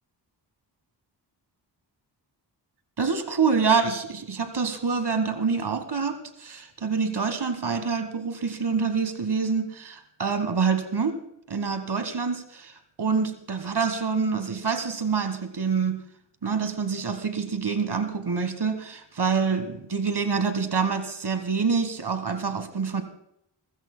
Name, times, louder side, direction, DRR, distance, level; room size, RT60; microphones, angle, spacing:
voice 1, 3.0-11.2 11.5-16.0 16.4-23.0, right 5 dB, 65° right, 9 dB, 1.5 m, -26 dB
26.0 x 15.5 x 2.2 m, 0.75 s
wide cardioid pair, 95°, 44 cm